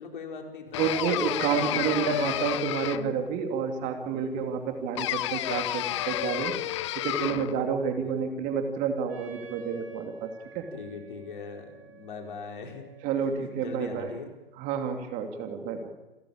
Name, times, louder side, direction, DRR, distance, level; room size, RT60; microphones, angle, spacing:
voice 1, 0.0-2.5 4.0-4.3 8.0-8.2 9.4-9.5 10.5-12.9 13.2-14.3, left 5 dB, 55° left, 3 dB, 5.0 m, -41 dB
sound 1, 0.7-3.3 5.0-7.6, left 15 dB, 30° left, 0.7 m, -31 dB
voice 2, 0.8-6.5 6.9-10.3 10.5-10.6 13.0-14.1 14.6-15.9, right 6 dB, 25° right, 5 dB, 2.7 m, -29 dB
Wind instrument woodwind instrument, 9.1-14.7, right 2 dB, 85° right, 5.4 m, -50 dB
28.0 x 14.0 x 8.8 m, 1.1 s
figure-of-eight pair, 130°, 29 cm